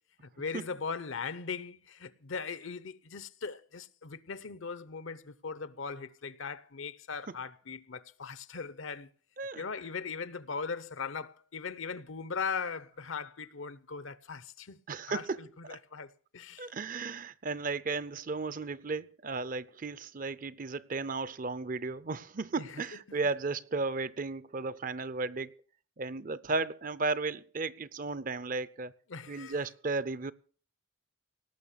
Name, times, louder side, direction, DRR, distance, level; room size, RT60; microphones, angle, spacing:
voice 1, 0.2-9.1 9.6-14.8 15.1-16.7 22.6-22.8 29.1-29.6, left 5 dB, 70° left, 0.8 m, -39 dB
voice 2, 14.9-15.4 15.7-15.8 16.6-25.5 26.0-28.9 29.3-30.3, right 3 dB, 40° right, 0.6 m, -34 dB
18.0 x 6.5 x 8.3 m
head